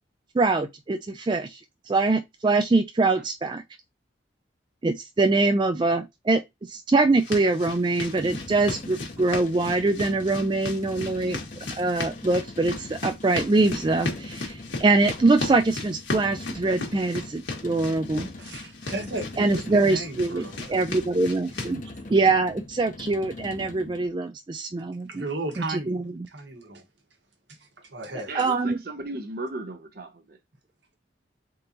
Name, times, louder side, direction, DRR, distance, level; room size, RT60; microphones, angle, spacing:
voice 1, 0.3-1.6 1.9-3.6 4.8-11.4 11.8-18.3 19.4-21.8 22.1-25.2 25.7-26.0 28.3-28.8, right 3 dB, 25° right, 0.3 m, -23 dB
sound 1, 7.2-21.7, left 3 dB, 80° left, 1.6 m, -36 dB
sound 2, 8.0-24.1, left 2 dB, 40° left, 0.7 m, -42 dB
voice 2, 18.4-20.8 25.1-26.0 26.3-26.8 27.6-28.3, right 2 dB, 70° right, 1.2 m, -35 dB
voice 3, 28.3-30.4, right 2 dB, 50° right, 0.7 m, -36 dB
3.9 x 3.7 x 2.8 m
head